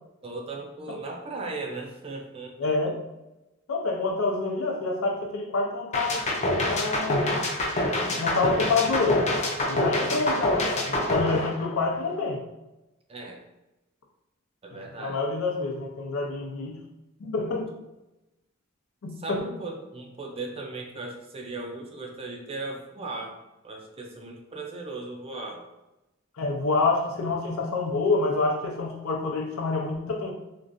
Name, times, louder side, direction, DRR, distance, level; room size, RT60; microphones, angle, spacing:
voice 1, 0.2-2.7 13.1-13.4 14.6-15.2 19.2-23.4 23.6-25.7, right 3 dB, 30° right, 1 dB, 0.4 m, -37 dB
voice 2, 2.6-3.0 3.7-7.2 8.2-9.3 9.7-12.4 14.7-16.8 17.2-17.7 19.0-19.4 26.4-30.3, left 3 dB, 90° left, 1 dB, 0.5 m, -27 dB
sound 1, 5.9-12.1, left 1 dB, 35° left, 0.4 m, -26 dB
2.9 x 2.4 x 2.5 m, 0.96 s
head